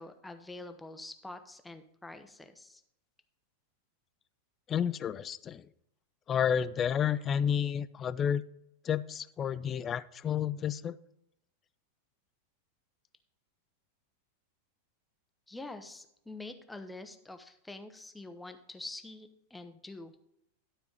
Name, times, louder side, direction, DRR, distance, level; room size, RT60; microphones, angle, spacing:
voice 1, 0.0-2.8 15.5-20.1, left 2 dB, 5° left, 7 dB, 0.8 m, -46 dB
voice 2, 4.7-5.7 6.3-8.4 8.8-10.9, left 8 dB, 25° left, 15 dB, 0.4 m, -30 dB
12.0 x 4.6 x 5.3 m, 0.78 s
figure-of-eight pair, 90°, 0 cm